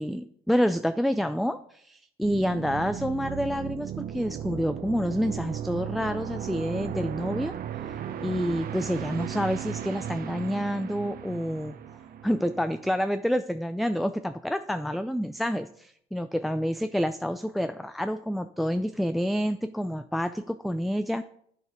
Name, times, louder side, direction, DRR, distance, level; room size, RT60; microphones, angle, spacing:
voice 1, 0.0-11.8 12.2-21.2, equal, ahead, 10 dB, 0.3 m, -28 dB
sound 1, 2.2-12.9, right 9 dB, 60° right, 0.8 m, -36 dB
8.7 x 6.6 x 5.0 m, 0.65 s
cardioid pair, 110°, 17 cm